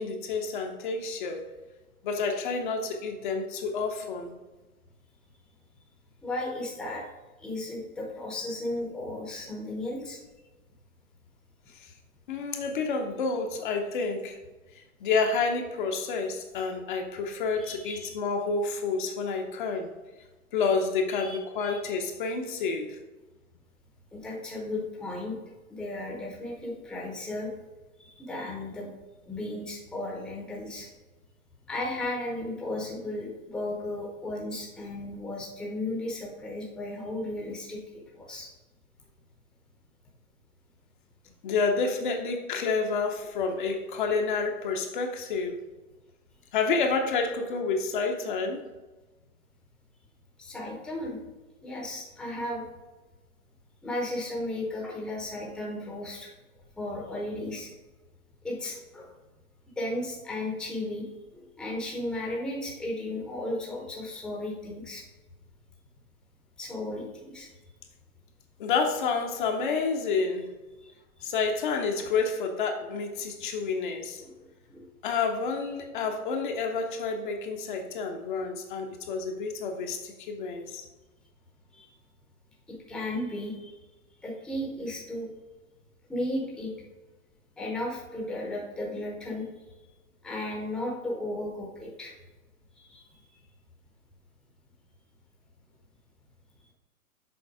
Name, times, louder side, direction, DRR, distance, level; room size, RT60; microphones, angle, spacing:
voice 1, 0.0-1.4 2.0-4.3 11.7-11.9 12.3-14.4 14.7-19.9 20.5-23.0 41.4-45.6 46.5-48.6 68.6-70.5 71.2-74.2 75.0-80.8, left 4 dB, 35° left, 3 dB, 0.7 m, -29 dB
voice 2, 6.2-7.0 7.4-10.2 17.6-18.1 21.1-21.8 24.1-25.4 25.7-27.5 28.0-28.9 29.2-30.9 31.7-38.5 50.4-51.2 51.6-52.6 53.8-56.3 56.8-57.7 58.4-59.1 59.8-61.1 61.3-65.0 66.6-67.5 70.8-70.9 74.2-74.8 81.7-81.9 82.7-83.7 84.2-85.3 86.1-86.7 87.6-89.7 90.2-92.2 92.7-93.2, left 1 dB, ahead, -2 dB, 0.8 m, -35 dB
7.0 x 4.3 x 4.7 m, 1.2 s
hypercardioid pair, 140°, 43 cm